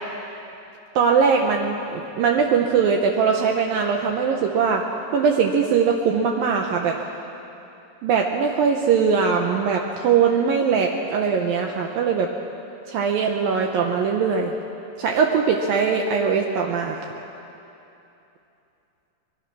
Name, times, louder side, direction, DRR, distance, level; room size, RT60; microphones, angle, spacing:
voice 1, 1.0-4.8 5.1-7.0 8.0-12.3 12.9-14.5 15.0-17.1, right 6 dB, 85° right, 2 dB, 2.0 m, -21 dB
25.5 x 21.0 x 6.2 m, 2.9 s
omnidirectional pair, 5.6 m